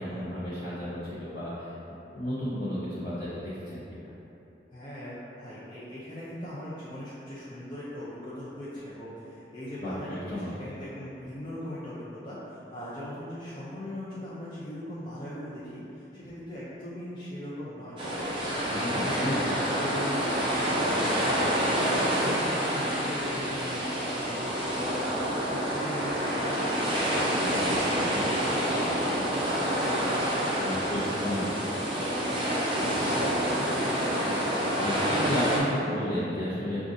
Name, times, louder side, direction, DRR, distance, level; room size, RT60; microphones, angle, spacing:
voice 1, 0.0-1.7 2.1-3.8 9.8-10.5 18.7-19.4 30.6-31.7 34.8-36.8, equal, 65° left, -11 dB, 0.8 m, -32 dB
voice 2, 4.7-18.0 18.4-19.5 19.8-20.3 20.6-21.0 21.3-25.1 25.4-28.0 28.3-29.0 29.3-31.2 31.5-34.4 34.7-36.0, left 1 dB, 25° left, -11 dB, 0.5 m, -39 dB
sound 1, 18.0-35.6, equal, 30° right, 0.6 m, -28 dB
6.0 x 2.4 x 2.6 m, 3.0 s
head